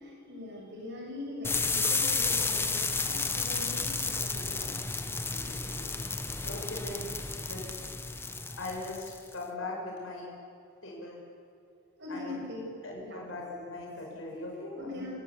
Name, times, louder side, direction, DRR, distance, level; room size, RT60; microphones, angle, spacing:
voice 1, 0.0-4.8 5.3-5.5 6.1-6.5 12.0-13.2 14.8-15.1, left 1 dB, 55° right, -1 dB, 6.9 m, -42 dB
sound 1, 1.4-9.3, left 4 dB, 10° left, 0.9 m, -32 dB
voice 2, 5.3-5.9 6.4-7.1 7.4-7.6 8.6-10.3 10.8-11.2 12.1-12.4 12.8-15.1, left 2 dB, 70° left, -2 dB, 6.7 m, -40 dB
27.0 x 17.5 x 8.5 m, 2.6 s
head